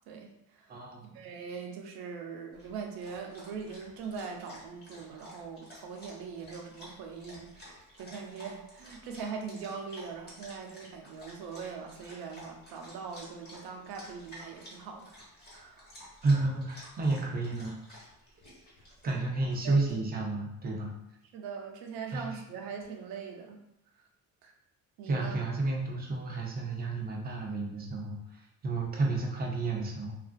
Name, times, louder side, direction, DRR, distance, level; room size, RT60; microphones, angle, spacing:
voice 1, 0.1-0.8 1.1-15.2 15.5-15.9 19.6-19.8 21.3-23.6 24.0-24.1 24.4-24.5 25.0-25.4, right 5 dB, 90° right, 3 dB, 0.6 m, -41 dB
voice 2, 0.7-1.1 16.2-18.0 19.0-20.9 22.1-22.2 25.1-30.1, right 3 dB, 25° right, -1 dB, 0.4 m, -31 dB
Dog, 2.5-19.9, equal, 30° left, 1.0 m, -52 dB
2.9 x 2.4 x 2.4 m, 0.83 s
cardioid pair, 160°, 36 cm